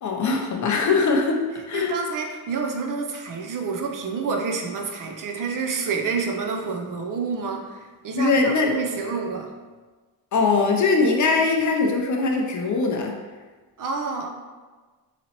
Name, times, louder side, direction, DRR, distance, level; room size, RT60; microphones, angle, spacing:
voice 1, 0.0-1.9 8.1-8.7 10.3-13.2, left 4 dB, 50° left, 1 dB, 0.5 m, -21 dB
voice 2, 1.7-9.5 13.8-14.3, right 4 dB, 55° right, 2 dB, 0.5 m, -28 dB
4.0 x 2.9 x 2.8 m, 1.3 s
wide cardioid pair, 175°, 39 cm